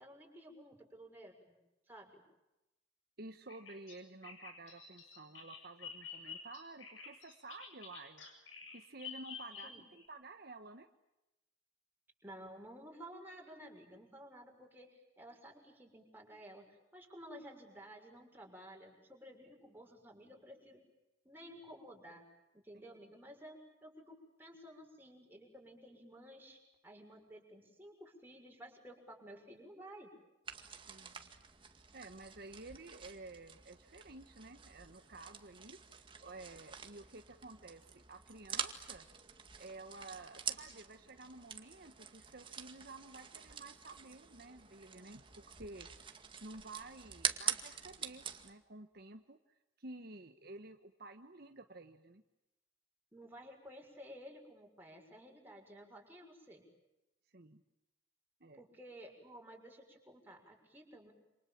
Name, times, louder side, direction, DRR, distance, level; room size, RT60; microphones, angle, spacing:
voice 1, 0.0-1.6 1.9-2.2 9.6-9.9 12.2-16.6 16.9-20.8 21.2-22.2 22.5-30.1 53.1-56.6 58.5-61.1, equal, 10° right, 0 dB, 6.6 m, -54 dB
voice 2, 3.2-10.9 22.7-22.8 30.9-31.2 31.9-35.8 36.2-39.1 39.6-49.4 49.8-52.2 57.3-57.6 58.4-58.6, right 2 dB, 55° right, 6 dB, 1.4 m, -52 dB
Bird vocalization bird call bird song, 3.5-10.1, left 6 dB, 90° left, 7.5 m, -50 dB
sound 1, 30.4-48.5, right 7 dB, 25° right, 2.0 m, -45 dB
28.5 x 27.5 x 7.5 m, 0.94 s
head